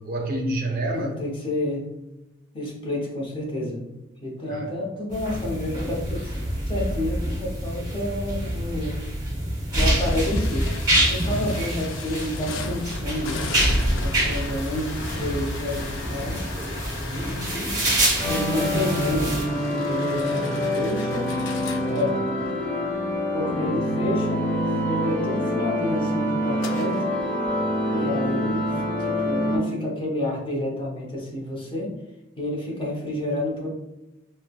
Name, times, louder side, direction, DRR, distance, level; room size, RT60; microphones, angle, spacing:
voice 1, 0.0-1.1 4.5-4.7 17.0-17.9, right 1 dB, 50° right, 2 dB, 0.5 m, -29 dB
voice 2, 0.9-1.8 2.5-3.8 4.2-6.3 6.7-9.1 9.7-10.7 11.1-13.4 14.0-16.4 18.2-21.3 21.9-22.2 23.3-27.0 27.9-31.9 32.4-33.7, left 1 dB, 25° left, -3 dB, 0.7 m, -29 dB
sound 1, 5.1-19.4, right 1 dB, 20° right, 0.9 m, -26 dB
sound 2, 9.7-22.8 26.6-27.1, left 3 dB, 70° left, 0.4 m, -36 dB
sound 3, 18.2-29.6, equal, 10° left, 1.1 m, -26 dB
3.1 x 2.0 x 2.3 m, 0.98 s
head